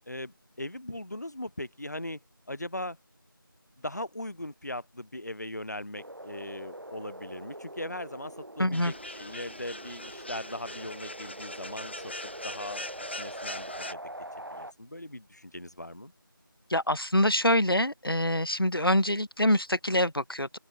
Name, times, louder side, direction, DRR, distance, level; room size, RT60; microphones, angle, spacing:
voice 1, 0.1-2.2 2.5-3.0 3.8-12.1 12.4-14.0 14.5-16.1, left 1 dB, 50° left, 1.5 m, -39 dB
sound 1, 6.0-14.7, right 1 dB, 70° right, 3.0 m, -43 dB
voice 2, 8.6-8.9 16.7-20.6, left 1 dB, 80° left, 2.8 m, -25 dB
sound 2, 8.7-13.9, left 1 dB, 30° left, 4.4 m, -42 dB
open air
figure-of-eight pair, 175°, 12 cm